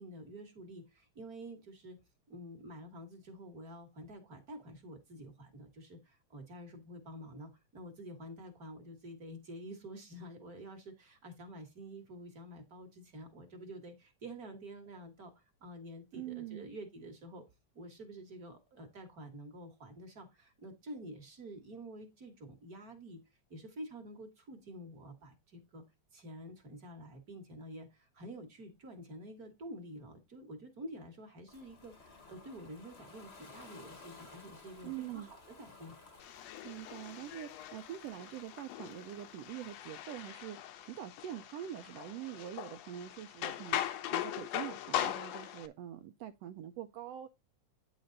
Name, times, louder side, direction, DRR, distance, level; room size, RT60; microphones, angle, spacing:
voice 1, 0.0-2.0 2.3-17.4 17.7-23.2 23.5-25.8 26.1-35.9, right 1 dB, 40° right, 1.6 m, -49 dB
voice 2, 16.1-16.7 34.8-35.3 36.6-40.6 40.9-43.8 44.1-47.3, right 11 dB, 80° right, 1.5 m, -44 dB
Ocean, 31.5-40.3, left 4 dB, 35° left, 0.9 m, -57 dB
sound 1, 36.2-45.7, left 12 dB, 70° left, 1.8 m, -40 dB
9.6 x 5.1 x 3.9 m
omnidirectional pair, 3.4 m